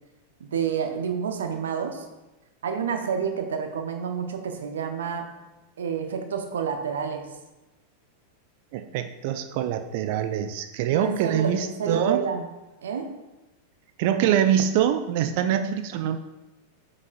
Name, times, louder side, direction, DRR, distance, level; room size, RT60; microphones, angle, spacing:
voice 1, 0.4-2.0 2.6-5.3 5.8-7.3 10.9-12.4 12.8-13.2, right 7 dB, 65° right, 5 dB, 0.8 m, -29 dB
voice 2, 8.7-12.2 14.0-16.2, right 10 dB, 50° right, 8 dB, 0.4 m, -24 dB
7.2 x 6.3 x 2.5 m, 1.0 s
figure-of-eight pair, 90°, 0 cm